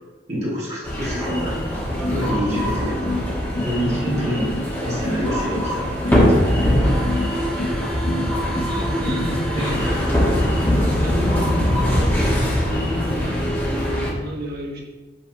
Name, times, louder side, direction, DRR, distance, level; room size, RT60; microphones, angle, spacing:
voice 1, 0.3-1.6 2.1-3.1 3.6-4.5 4.8-6.2 9.5-9.7, equal, 35° right, -7 dB, 1.8 m, -26 dB
sound 1, 0.8-14.1, equal, 10° left, 1.3 m, -22 dB
sound 2, 2.0-9.7, left 1 dB, 65° left, 0.7 m, -28 dB
voice 2, 8.7-9.9 10.9-12.2 12.7-13.5 14.2-14.8, equal, 55° right, -4 dB, 1.6 m, -31 dB
5.8 x 3.5 x 5.4 m, 1.2 s
head